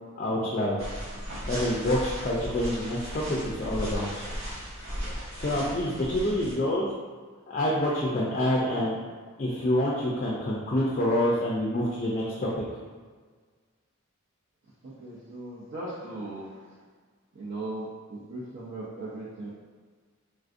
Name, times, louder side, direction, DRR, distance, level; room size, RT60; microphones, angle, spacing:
voice 1, 0.2-0.8 1.5-4.2 5.1-6.9 7.5-9.0 9.4-12.6, left 1 dB, 35° left, -5 dB, 0.4 m, -27 dB
sound 1, 0.8-6.5, equal, 75° right, 1.2 m, -36 dB
voice 2, 14.8-16.5 17.4-19.5, right 2 dB, 55° right, -8 dB, 0.5 m, -38 dB
3.3 x 2.5 x 2.5 m, 1.5 s
head